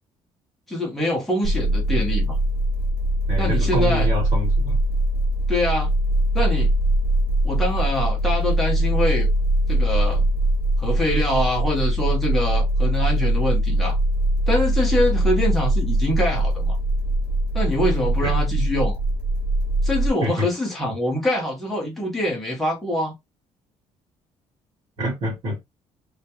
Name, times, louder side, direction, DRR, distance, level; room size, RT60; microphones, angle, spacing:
voice 1, 0.7-2.4 3.4-4.1 5.5-5.9 6.3-6.7 7.4-9.3 9.7-10.3 10.8-14.0 14.5-16.7 17.5-19.0 19.8-23.1, left 1 dB, ahead, 0.7 m, -24 dB
sound 1, 1.4-20.1, right 1 dB, 55° left, 0.7 m, -21 dB
voice 2, 3.3-4.8 18.2-18.4 20.2-20.5 25.0-25.6, right 1 dB, 50° right, 1.2 m, -27 dB
2.3 x 2.1 x 2.8 m
cardioid pair, 165°, 12 cm